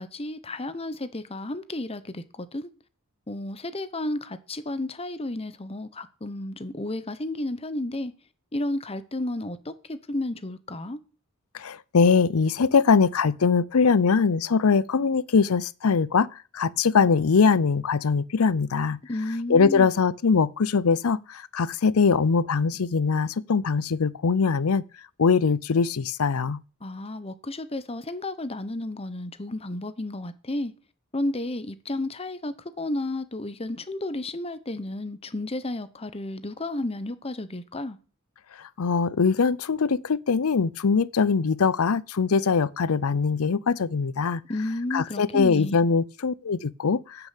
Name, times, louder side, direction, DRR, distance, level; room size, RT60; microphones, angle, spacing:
voice 1, 0.0-2.7 3.3-8.1 8.5-11.0 19.1-19.9 26.8-30.7 31.1-38.0 44.5-45.8, left 1 dB, 25° left, 1.0 m, -32 dB
voice 2, 11.5-16.3 16.5-19.0 19.5-24.8 25.2-26.6 38.8-44.4 44.9-47.3, left 5 dB, 85° left, 0.6 m, -22 dB
10.0 x 6.9 x 8.4 m
head